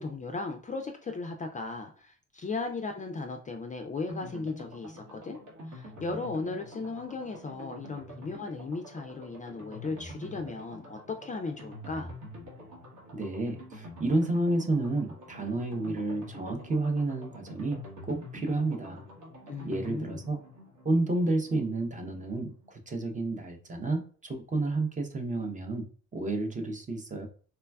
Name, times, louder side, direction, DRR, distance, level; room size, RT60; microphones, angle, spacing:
voice 1, 0.0-5.4 5.7-12.1 19.5-20.2, left 3 dB, 25° left, 4 dB, 0.3 m, -36 dB
sound 1, 4.1-22.7 23.0-23.1 23.3-23.4, equal, 80° right, 1.1 m, -46 dB
voice 2, 13.1-19.1 19.6-20.4 20.8-27.3, right 2 dB, 25° right, 5 dB, 0.6 m, -30 dB
3.2 x 2.2 x 2.2 m, 0.41 s
cardioid pair, 90°, 30 cm